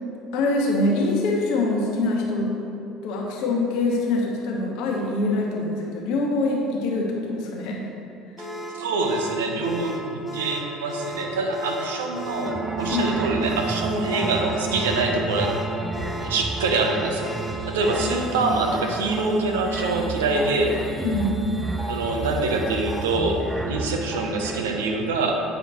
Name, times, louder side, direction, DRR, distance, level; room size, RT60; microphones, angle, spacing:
voice 1, 0.3-2.5 3.0-7.9 12.9-13.1 18.0-18.1 21.0-21.4, left 2 dB, 65° left, -1 dB, 1.1 m, -24 dB
sound 1, 8.4-18.3, equal, 5° left, 1.2 m, -35 dB
voice 2, 8.7-15.6 16.1-17.3 17.6-20.8 21.9-25.4, right 3 dB, 80° right, 3 dB, 0.6 m, -25 dB
sound 2, 12.4-24.6, right 3 dB, 20° right, 0.6 m, -31 dB
8.8 x 4.9 x 3.0 m, 2.6 s
hypercardioid pair, 65°, 0 cm